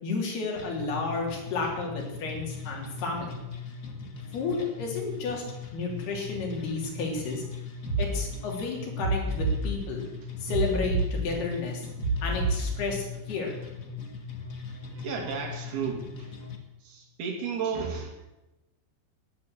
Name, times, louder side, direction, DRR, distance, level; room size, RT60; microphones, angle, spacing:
voice 1, 0.0-3.3 4.3-5.4 5.7-7.4 8.0-10.0 10.4-11.8 12.2-13.5, left 4 dB, 85° left, 0 dB, 5.3 m, -32 dB
sound 1, 0.6-16.6, left 5 dB, 55° left, 0.9 m, -40 dB
sound 2, 7.9-8.1 9.0-9.6 10.5-11.1 12.0-12.6, right 4 dB, 40° right, 3.7 m, -27 dB
voice 2, 14.9-16.3 16.8-18.3, right 6 dB, 80° right, 1 dB, 4.6 m, -33 dB
13.5 x 11.0 x 8.2 m, 1.0 s
omnidirectional pair, 4.4 m